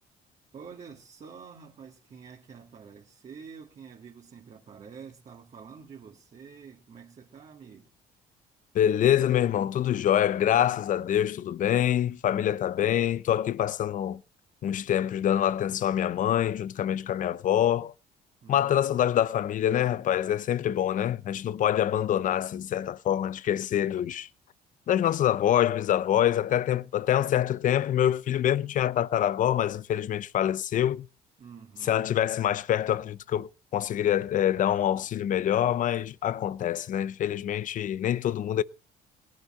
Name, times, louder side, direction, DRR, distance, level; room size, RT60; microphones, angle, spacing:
voice 1, 0.5-7.9 18.4-19.1 31.4-32.1, right 6 dB, 40° right, 2.1 m, -48 dB
voice 2, 8.7-14.2 14.6-17.9 18.5-24.3 24.9-31.1 31.8-38.6, left 11 dB, 50° left, 0.6 m, -25 dB
18.5 x 10.5 x 4.3 m
cardioid pair, 110°, 17 cm